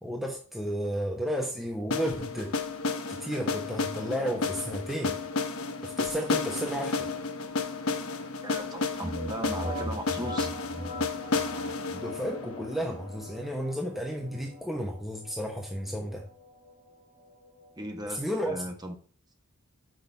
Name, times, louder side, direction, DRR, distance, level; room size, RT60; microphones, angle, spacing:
voice 1, 0.0-2.6 3.1-5.2 5.8-7.1 11.9-16.3 18.1-18.6, equal, ahead, 1.0 m, -33 dB
sound 1, 1.9-13.8, left 3 dB, 75° left, 1.0 m, -32 dB
voice 2, 8.4-10.5 17.8-19.0, right 1 dB, 20° right, 1.3 m, -37 dB
sound 2, 9.0-18.6, equal, 35° right, 3.7 m, -41 dB
6.3 x 5.2 x 5.4 m
head